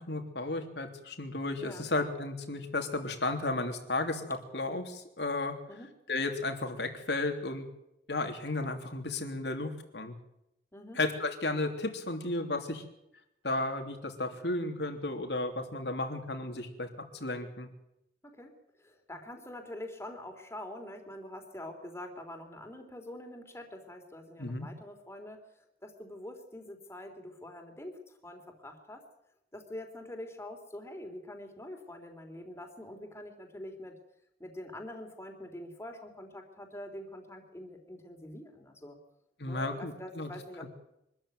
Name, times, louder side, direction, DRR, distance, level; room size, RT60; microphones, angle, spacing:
voice 1, 0.0-5.5 6.1-7.7 8.1-10.1 10.9-12.8 13.4-16.9 17.1-17.7 24.4-24.7 39.4-40.3, left 2 dB, 70° left, 6 dB, 3.3 m, -33 dB
voice 2, 18.2-25.5 25.8-29.1 29.5-34.0 34.4-39.0 39.5-40.7, left 1 dB, 15° left, 4 dB, 3.5 m, -45 dB
24.5 x 13.5 x 9.3 m, 0.83 s
head